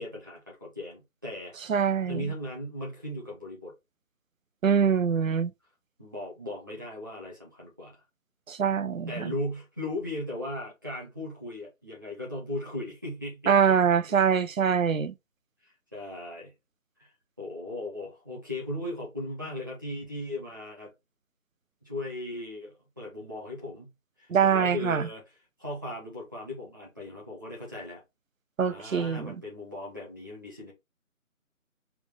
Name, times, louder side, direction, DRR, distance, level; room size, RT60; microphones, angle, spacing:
voice 1, 0.0-1.6 2.1-3.7 6.0-8.0 9.1-14.0 15.6-16.5 17.0-17.1 17.4-20.9 21.8-23.9 24.2-25.2 25.6-28.0 28.6-30.7, left 1 dB, 15° right, 1.1 m, -37 dB
voice 2, 1.7-2.3 4.6-5.5 8.5-9.3 13.5-15.1 24.3-25.1 28.6-29.4, right 7 dB, 70° right, 0.6 m, -24 dB
4.7 x 2.6 x 3.6 m
figure-of-eight pair, 170°, 42 cm